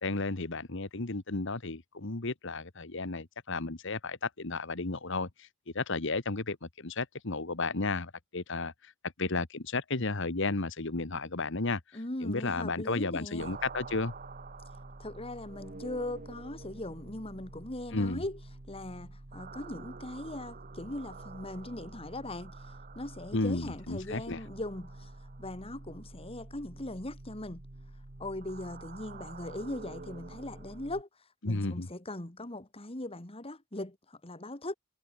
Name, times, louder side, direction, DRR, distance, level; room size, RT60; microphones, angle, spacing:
voice 1, 0.0-5.5 5.7-8.9 9.2-11.8 12.2-14.1 17.9-18.2 23.3-24.4 31.4-31.9, left 3 dB, 60° left, 1.6 m, -33 dB
voice 2, 11.9-13.6 15.0-18.4 18.7-25.1 25.4-27.6 28.2-31.1 31.5-34.7, left 1 dB, 25° left, 2.0 m, -40 dB
sound 1, 13.4-31.0, right 3 dB, 40° right, 1.2 m, -47 dB
head